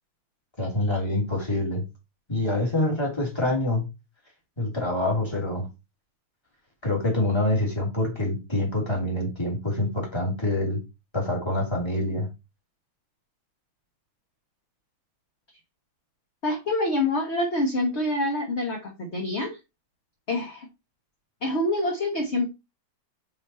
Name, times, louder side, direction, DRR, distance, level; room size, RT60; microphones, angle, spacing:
voice 1, 0.6-1.8 2.3-3.9 4.6-5.7 6.8-10.8 11.1-12.3, left 1 dB, 10° left, 2.5 m, -26 dB
voice 2, 16.4-19.6 20.3-20.7 21.4-22.5, left 1 dB, 35° left, 1.4 m, -26 dB
5.3 x 5.2 x 4.3 m
omnidirectional pair, 2.3 m